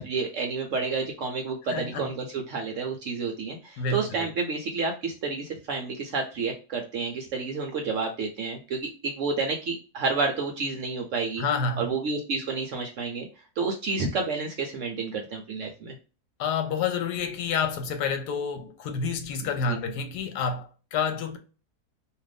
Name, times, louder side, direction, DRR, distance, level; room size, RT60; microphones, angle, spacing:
voice 1, 0.0-11.4 11.8-13.3 13.6-16.0 19.7-19.8, right 4 dB, 70° right, 0.7 m, -30 dB
voice 2, 1.7-2.1 3.8-4.3 11.4-11.9 16.4-21.4, left 5 dB, 85° left, 1.2 m, -29 dB
2.6 x 2.5 x 3.3 m
omnidirectional pair, 1.7 m